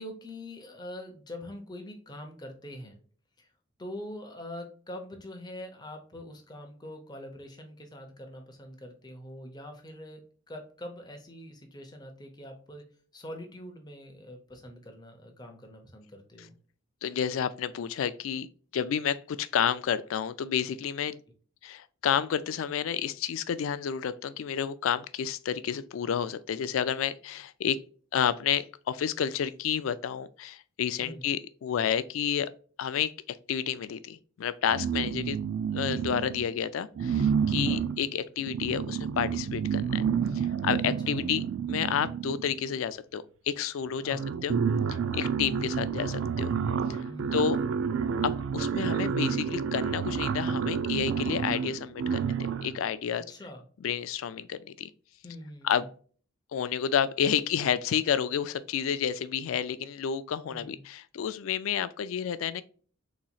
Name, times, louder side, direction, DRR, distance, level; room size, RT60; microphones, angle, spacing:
voice 1, 0.0-3.0 3.4-3.5 3.8-12.8 13.1-16.6 31.0-31.2 37.6-37.9 41.1-41.2 44.0-44.3 47.1-47.5 53.1-53.6 55.2-55.8 60.5-60.8, left 1 dB, 20° left, 0.8 m, -44 dB
voice 2, 17.0-18.5 18.7-21.2 21.6-27.8 28.1-32.5 32.8-35.4 35.7-40.0 40.3-44.6 44.9-46.5 46.9-47.6 48.2-52.4 52.6-53.2 53.8-54.9 55.6-55.9 56.5-62.6, left 8 dB, 80° left, 0.3 m, -30 dB
sound 1, 34.7-36.5 37.0-42.6 43.6-43.7 43.9-52.8, right 6 dB, 70° right, 0.3 m, -29 dB
4.0 x 3.0 x 2.3 m
head